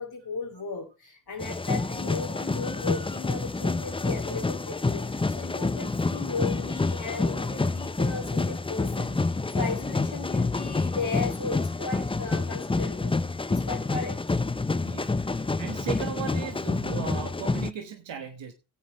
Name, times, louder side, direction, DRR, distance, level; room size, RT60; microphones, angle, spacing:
voice 1, 0.0-13.2 13.5-14.4 15.4-15.5, left 4 dB, 55° left, 2.7 m, -36 dB
sound 1, 1.4-17.7, left 3 dB, 10° left, 0.5 m, -28 dB
voice 2, 14.8-18.5, right 7 dB, 85° right, 1.4 m, -37 dB
15.5 x 8.7 x 3.1 m
cardioid pair, 50°, 44 cm